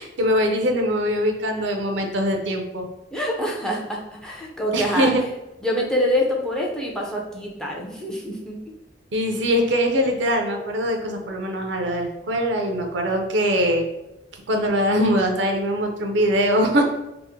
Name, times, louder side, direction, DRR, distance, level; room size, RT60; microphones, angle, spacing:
voice 1, 0.0-2.9 4.7-5.2 9.1-13.8 14.5-16.8, equal, 70° right, 3 dB, 0.5 m, -22 dB
voice 2, 3.1-5.1 5.6-8.6, left 1 dB, 5° left, -2 dB, 0.4 m, -25 dB
2.8 x 2.0 x 3.6 m, 0.94 s
head